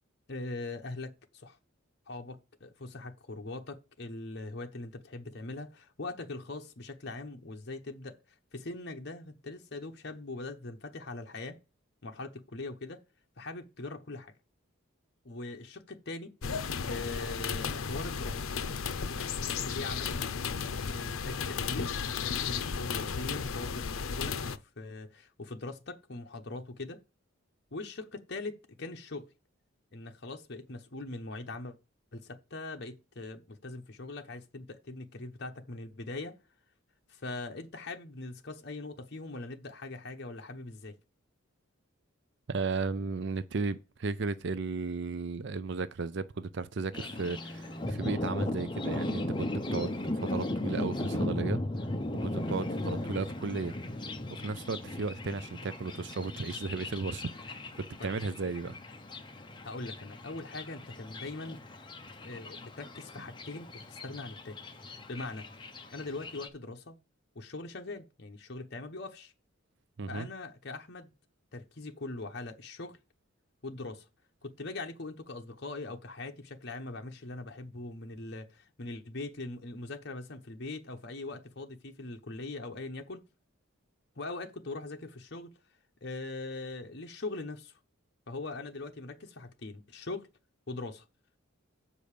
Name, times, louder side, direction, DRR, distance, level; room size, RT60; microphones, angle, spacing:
voice 1, 0.3-1.6 2.1-8.2 8.5-11.6 12.0-13.0 13.4-14.3 15.2-16.3 16.9-18.5 19.1-19.3 19.6-20.3 20.9-27.0 27.7-29.3 29.9-31.8 32.1-36.4 37.1-41.0 58.0-58.2 59.6-61.6 62.2-64.6 65.1-65.5 65.9-67.0 67.3-69.3 70.1-71.1 71.5-73.0 73.6-74.1 74.4-83.2 84.2-85.5 86.0-87.8 88.3-90.3 90.7-91.0, left 2 dB, 55° left, 0.9 m, -41 dB
sound 1, 16.4-24.6, left 6 dB, 85° left, 0.6 m, -34 dB
voice 2, 42.5-51.9 52.2-53.7 54.3-58.8 70.0-70.3, right 4 dB, 60° right, 0.5 m, -35 dB
Thunder, 46.9-66.5, left 1 dB, 20° left, 0.9 m, -37 dB
sound 2, 47.2-53.9, equal, 25° right, 0.8 m, -51 dB
7.4 x 5.3 x 6.6 m
head